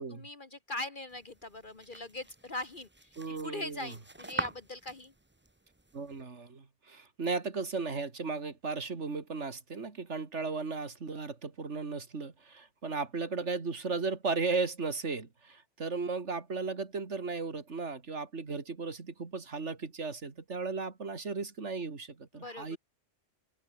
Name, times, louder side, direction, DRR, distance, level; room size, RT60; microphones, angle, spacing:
voice 1, 0.0-2.9 3.4-5.1 22.3-22.8, left 2 dB, 45° left, 1.8 m, -41 dB
sound 1, 1.1-6.2, right 2 dB, 10° right, 0.8 m, -44 dB
voice 2, 3.2-4.0 5.9-22.8, right 4 dB, 75° right, 2.7 m, -36 dB
open air
omnidirectional pair, 1.2 m